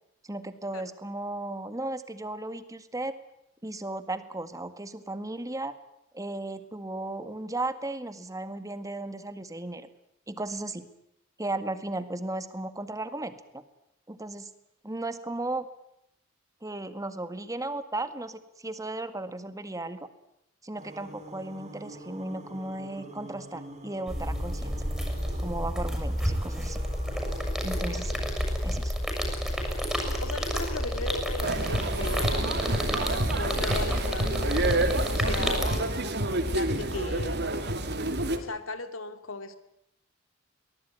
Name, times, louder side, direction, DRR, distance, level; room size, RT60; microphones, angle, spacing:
voice 1, 0.2-3.1 3.6-5.7 6.1-9.9 10.3-10.9 11.4-13.6 14.1-14.5 14.8-15.7 16.6-20.1 20.6-24.8 25.4-26.8 27.6-28.3 28.6-28.9 36.2-36.3, right 2 dB, 15° right, 11 dB, 1.9 m, -35 dB
sound 1, 20.7-28.0, right 1 dB, 35° right, 4.3 m, -45 dB
sound 2, 24.1-35.8, equal, ahead, 6.6 m, -30 dB
voice 2, 27.9-28.2 29.9-32.6 33.2-34.7 35.0-35.8 36.3-37.4 38.4-39.6, left 3 dB, 80° left, 10 dB, 2.5 m, -37 dB
sound 3, 31.4-38.4, right 2 dB, 55° right, 2.5 m, -29 dB
23.5 x 19.0 x 9.5 m, 0.82 s
head